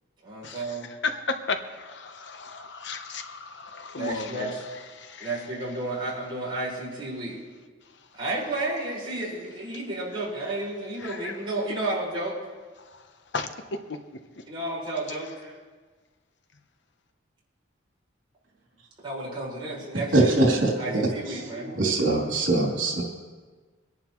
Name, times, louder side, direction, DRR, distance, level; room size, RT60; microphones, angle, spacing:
voice 1, 0.2-0.9 4.0-4.6 5.2-7.4 8.2-12.4 14.5-15.6 19.0-20.3 20.8-21.7, right 2 dB, 25° right, -6 dB, 5.2 m, -32 dB
voice 2, 1.0-4.6 4.9-5.3 11.0-11.3 13.3-13.5, left 4 dB, 65° left, 8 dB, 0.9 m, -33 dB
voice 3, 20.1-21.1 21.6-23.0, right 2 dB, 75° right, -2 dB, 3.2 m, -22 dB
23.5 x 11.0 x 3.1 m, 1.4 s
head